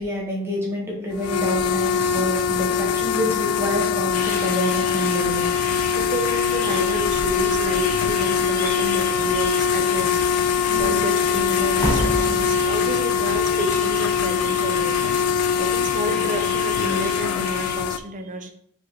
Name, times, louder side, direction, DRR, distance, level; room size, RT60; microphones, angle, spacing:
voice 1, 0.0-5.5 10.7-11.0, equal, 10° right, -4 dB, 1.1 m, -27 dB
sound 1, 1.1-18.0, left 7 dB, 85° left, 0.3 m, -22 dB
sound 2, 4.1-17.8, left 2 dB, 35° left, 1.2 m, -35 dB
sound 3, 5.5-8.3 8.6-8.9 9.2-14.6 15.3-15.6, equal, 10° left, 1.0 m, -32 dB
voice 2, 5.9-10.2 10.8-15.0 15.6-18.5, right 1 dB, 35° right, 6 dB, 0.5 m, -30 dB
4.6 x 3.5 x 3.0 m, 0.66 s
head